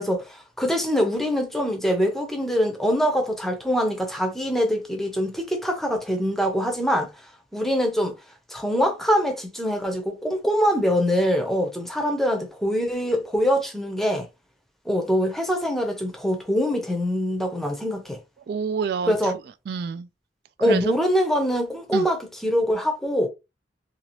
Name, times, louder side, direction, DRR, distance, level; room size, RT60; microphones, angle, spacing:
voice 1, 0.0-7.1 7.5-8.2 8.5-14.3 14.9-18.2 19.1-19.3 20.6-23.3, equal, ahead, 0.7 m, -24 dB
voice 2, 18.5-19.3 19.7-20.1 20.6-20.9 21.9-22.1, right 6 dB, 60° right, 0.3 m, -28 dB
2.9 x 2.9 x 2.9 m
head